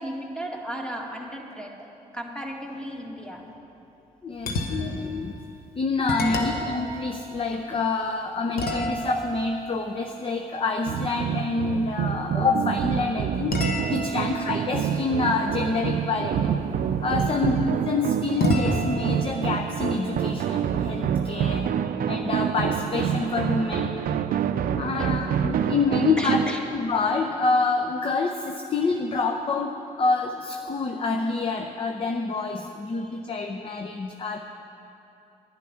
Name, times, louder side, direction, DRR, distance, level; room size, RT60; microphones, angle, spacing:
voice 1, 0.0-1.8 2.1-3.4 6.2-6.4 17.2-17.6 25.0-25.2 26.2-26.6 33.1-33.2, equal, 5° left, 0 dB, 1.7 m, -35 dB
voice 2, 4.2-5.4 5.7-16.5 17.0-17.6 17.8-21.7 22.1-24.0 24.8-26.4 26.7-34.4, left 4 dB, 35° left, 4 dB, 0.7 m, -27 dB
sound 1, 4.4-5.1 5.6-5.7 6.1-8.0 8.6-11.2 13.5-16.2 18.4-21.0, left 2 dB, 80° left, 1.2 m, -32 dB
sound 2, 10.9-26.5, right 8 dB, 70° right, 0.4 m, -27 dB
10.5 x 9.8 x 5.7 m, 2.9 s
cardioid pair, 70°, 16 cm